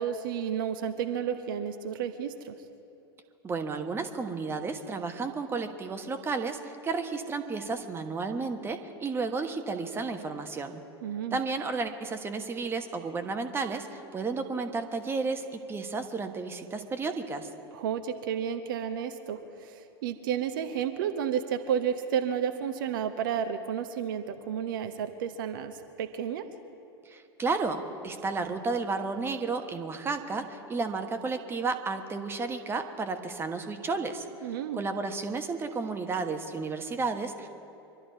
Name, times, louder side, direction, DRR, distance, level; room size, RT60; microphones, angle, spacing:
voice 1, 0.0-2.6 11.0-11.4 17.7-26.4 34.4-34.8, right 8 dB, 55° right, 8 dB, 0.9 m, -31 dB
voice 2, 3.4-10.8 11.3-17.5 27.0-34.3 34.7-37.5, right 4 dB, 15° right, 7 dB, 1.3 m, -32 dB
24.0 x 12.5 x 4.7 m, 2.8 s
figure-of-eight pair, 85°, 13 cm